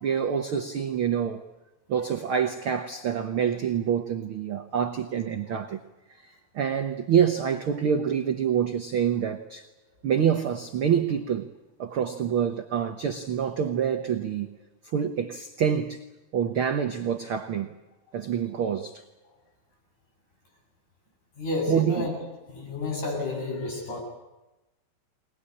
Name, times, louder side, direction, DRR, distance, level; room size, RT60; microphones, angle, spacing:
voice 1, 0.0-1.4 1.9-5.8 6.5-9.6 10.0-11.5 11.8-14.5 14.9-16.0 16.3-17.7 18.1-19.0 21.7-22.2, right 8 dB, 75° right, 1.2 m, -26 dB
voice 2, 21.4-22.1 22.5-24.0, left 2 dB, 60° left, 9.4 m, -30 dB
23.5 x 20.0 x 10.0 m
omnidirectional pair, 4.1 m